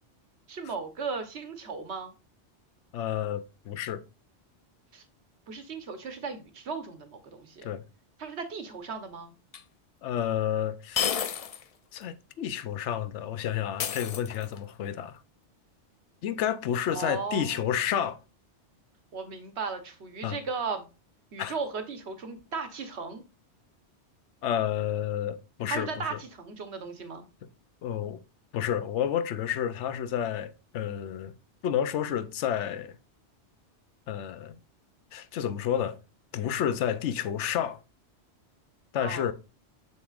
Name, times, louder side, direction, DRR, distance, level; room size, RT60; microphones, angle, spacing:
voice 1, 0.5-2.1 4.9-5.0 5.5-7.7 8.2-9.3 16.9-17.8 19.1-20.8 21.3-23.2 25.7-27.3 39.0-39.3, right 5 dB, 70° right, 1.3 m, -36 dB
voice 2, 2.9-4.0 7.6-7.8 10.0-11.1 11.9-15.2 16.2-18.2 20.2-20.4 21.4-21.5 24.4-26.2 27.8-28.2 28.5-31.4 31.6-33.0 34.1-34.6 35.1-36.0 36.3-37.8 38.9-39.3, left 9 dB, 85° left, 0.9 m, -30 dB
sound 1, 9.5-9.6 11.0-11.7 12.0-12.1 13.8-14.7, left 8 dB, 65° left, 0.3 m, -31 dB
6.7 x 6.4 x 2.4 m
omnidirectional pair, 1.2 m